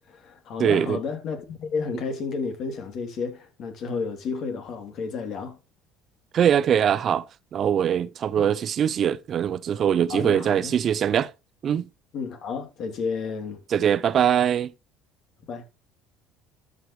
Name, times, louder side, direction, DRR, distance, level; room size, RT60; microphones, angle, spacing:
voice 1, 0.1-5.6 8.4-8.5 10.1-10.7 12.1-13.6 15.5-15.6, left 5 dB, 55° left, 3.0 m, -31 dB
voice 2, 0.6-1.0 6.3-7.3 7.5-11.3 11.6-11.9 13.7-14.7, right 9 dB, 45° right, 0.5 m, -22 dB
13.0 x 6.5 x 3.2 m
supercardioid pair, 95°, 0 cm